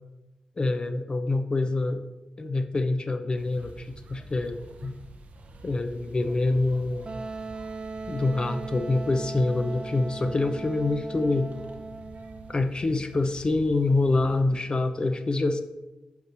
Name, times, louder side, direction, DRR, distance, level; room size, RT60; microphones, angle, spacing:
voice 1, 0.6-2.0 2.4-4.9 5.6-7.1 8.1-11.5 12.5-15.6, left 2 dB, 40° left, 8 dB, 0.6 m, -26 dB
sound 1, 3.3-14.4, right 2 dB, 80° right, 0.8 m, -48 dB
Wind instrument woodwind instrument, 7.1-12.6, right 3 dB, 45° right, 0.4 m, -38 dB
5.8 x 4.5 x 6.0 m, 1.0 s
cardioid pair, 70°, 2 cm